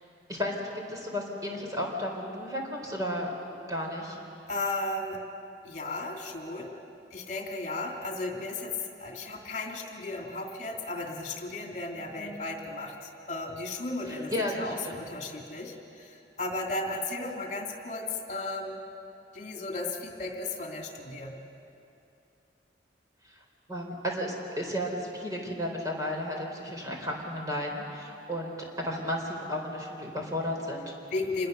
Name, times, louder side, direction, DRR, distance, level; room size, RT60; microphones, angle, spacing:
voice 1, 0.3-3.3 3.7-4.2 12.2-12.5 14.1-15.1 23.7-30.9, left 1 dB, 20° right, 0 dB, 4.0 m, -33 dB
voice 2, 4.5-5.2 5.6-6.8 7.1-8.7 9.0-18.8 19.3-21.3 31.1-31.5, left 2 dB, 40° left, 2 dB, 2.7 m, -35 dB
27.0 x 21.0 x 6.8 m, 2.7 s
head